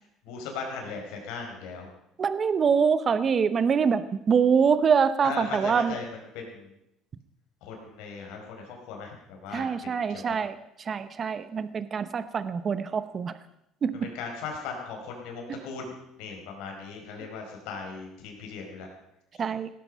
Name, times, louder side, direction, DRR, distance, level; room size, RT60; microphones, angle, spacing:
voice 1, 0.2-1.9 5.2-6.7 7.6-10.4 13.9-15.9 16.2-18.9, left 5 dB, 85° left, 2 dB, 5.3 m, -38 dB
voice 2, 2.2-6.0 9.5-10.6 10.9-13.3 13.8-14.1 15.5-15.6 19.4-19.7, right 6 dB, 30° right, 13 dB, 0.9 m, -25 dB
17.5 x 13.0 x 5.6 m, 0.81 s
cardioid pair, 145°, 0 cm